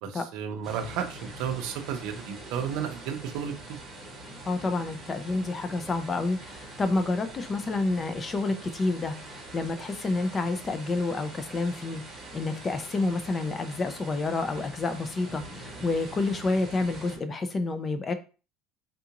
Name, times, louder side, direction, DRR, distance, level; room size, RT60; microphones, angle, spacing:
voice 1, 0.0-3.8, right 8 dB, 60° right, 5 dB, 0.6 m, -33 dB
sound 1, 0.6-17.2, right 2 dB, 15° right, 1.1 m, -44 dB
voice 2, 4.5-18.1, left 3 dB, 15° left, 8 dB, 0.4 m, -29 dB
3.7 x 2.4 x 2.9 m, 0.34 s
cardioid pair, 175°, 0 cm